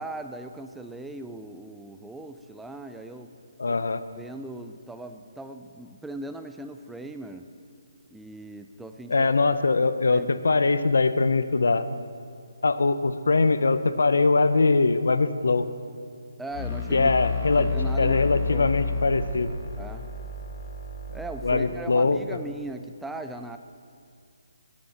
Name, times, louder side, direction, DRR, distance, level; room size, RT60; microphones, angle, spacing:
voice 1, 0.0-3.3 4.2-7.5 8.1-9.3 9.8-10.4 16.4-17.1 17.5-18.7 19.8-20.0 21.1-23.6, right 2 dB, 5° right, 7 dB, 0.3 m, -39 dB
voice 2, 3.6-4.0 9.1-11.9 12.6-15.7 16.9-17.7 18.0-19.5 21.4-22.2, left 3 dB, 80° left, 12 dB, 0.6 m, -22 dB
sound 1, 16.5-21.6, left 3 dB, 30° left, 1.8 m, -31 dB
9.3 x 7.2 x 7.8 m, 2.3 s
hypercardioid pair, 160°, 0 cm